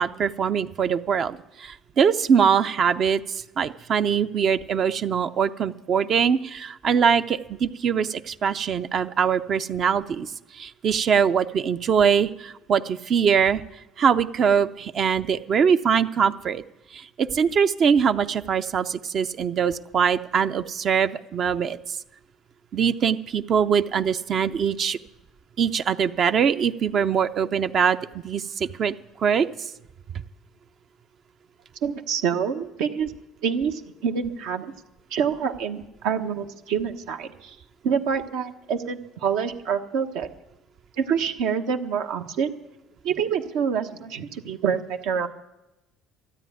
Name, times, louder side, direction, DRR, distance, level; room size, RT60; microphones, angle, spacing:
voice 1, 0.0-13.6 14.0-16.6 16.9-22.0 22.7-25.0 25.6-28.0 28.2-28.9 29.2-29.5, right 7 dB, 50° right, 10 dB, 0.6 m, -22 dB
voice 2, 31.8-33.1 33.4-34.7 35.1-37.6 37.8-40.3 41.0-42.5 43.0-45.3, right 7 dB, 75° right, 5 dB, 1.1 m, -26 dB
13.0 x 9.2 x 9.3 m, 0.98 s
supercardioid pair, 80°, 0 cm